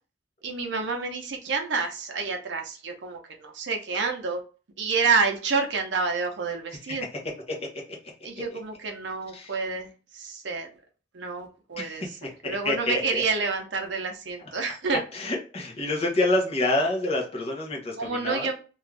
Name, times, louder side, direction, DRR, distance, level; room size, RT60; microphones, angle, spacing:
voice 1, 0.4-4.4 4.8-7.1 8.2-10.7 11.1-15.0 18.0-18.5, right 4 dB, 65° right, 3 dB, 0.6 m, -29 dB
voice 2, 11.8-13.2 15.1-18.5, left 2 dB, 35° left, -1 dB, 0.7 m, -27 dB
2.5 x 2.3 x 3.1 m, 0.36 s
head